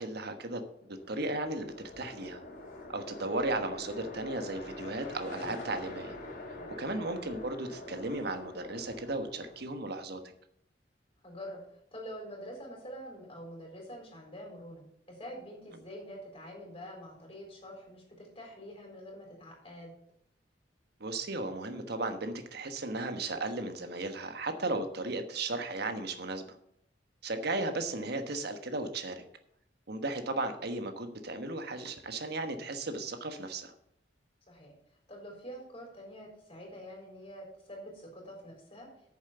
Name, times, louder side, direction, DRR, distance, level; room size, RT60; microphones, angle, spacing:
voice 1, 0.0-2.4 2.9-6.1 6.8-10.2 21.0-26.5 27.2-29.2 29.9-33.7, right 2 dB, 60° right, 7 dB, 1.3 m, -35 dB
sound 1, 0.9-10.0, left 2 dB, 50° left, 2.9 m, -45 dB
voice 2, 11.2-11.7 11.9-19.9 34.5-34.7 35.1-38.9, equal, 30° left, 0 dB, 4.1 m, -46 dB
9.0 x 7.3 x 6.8 m, 0.75 s
head